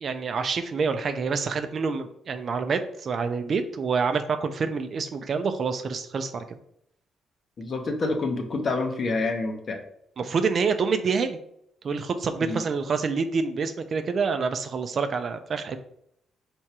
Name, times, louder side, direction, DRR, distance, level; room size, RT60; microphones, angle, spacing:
voice 1, 0.0-6.4 10.2-11.4 11.8-15.8, right 5 dB, 50° right, 8 dB, 0.4 m, -27 dB
voice 2, 7.6-9.8 12.4-12.6, left 3 dB, 45° left, 4 dB, 0.8 m, -27 dB
4.6 x 3.4 x 2.9 m, 0.73 s
cardioid pair, 90°, 0 cm